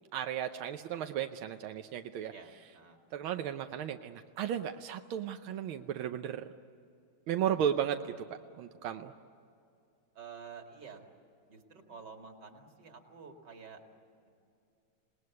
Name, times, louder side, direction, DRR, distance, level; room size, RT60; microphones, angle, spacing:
voice 1, 0.1-2.3 3.1-6.4 7.3-8.1 8.6-9.1, right 9 dB, 90° right, 7 dB, 1.6 m, -34 dB
voice 2, 2.3-3.0 10.1-11.1 11.5-13.8, right 5 dB, 55° right, 4 dB, 2.9 m, -50 dB
27.5 x 19.5 x 9.5 m, 2.5 s
omnidirectional pair, 2.2 m